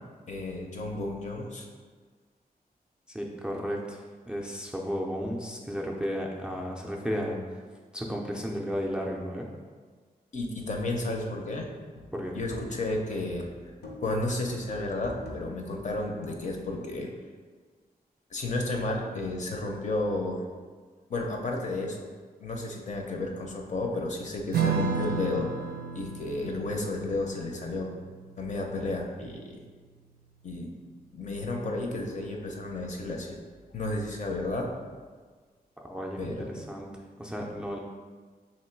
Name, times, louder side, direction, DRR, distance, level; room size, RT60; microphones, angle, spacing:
voice 1, 0.3-1.7 10.3-11.7 12.3-13.5 14.0-17.1 18.3-20.4 21.1-22.0 22.4-27.9 28.4-29.6 30.4-30.7 31.1-33.4 33.7-34.7 36.2-36.6, left 2 dB, 50° left, 1 dB, 0.6 m, -32 dB
voice 2, 3.1-7.6 7.9-9.5 12.1-12.3 35.8-36.9 37.2-37.8, equal, 5° right, -1 dB, 0.4 m, -33 dB
sound 1, 11.3-11.6 11.9-12.9 13.2-14.2 14.5-16.7, equal, 85° left, 0.7 m, -45 dB
Strum, 24.5-31.4, right 5 dB, 90° right, 0.4 m, -34 dB
3.0 x 2.9 x 4.4 m, 1.5 s
wide cardioid pair, 125°, 16 cm